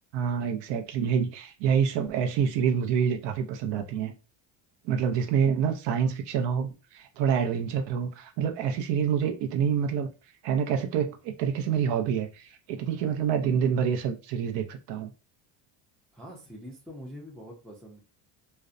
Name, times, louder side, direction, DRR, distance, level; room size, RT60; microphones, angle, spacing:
voice 1, 0.1-4.1 4.8-10.1 10.4-15.1, right 7 dB, 65° right, 0.6 m, -27 dB
voice 2, 16.1-18.0, equal, ahead, 0.4 m, -44 dB
2.5 x 2.0 x 2.4 m
cardioid pair, 120°, 46 cm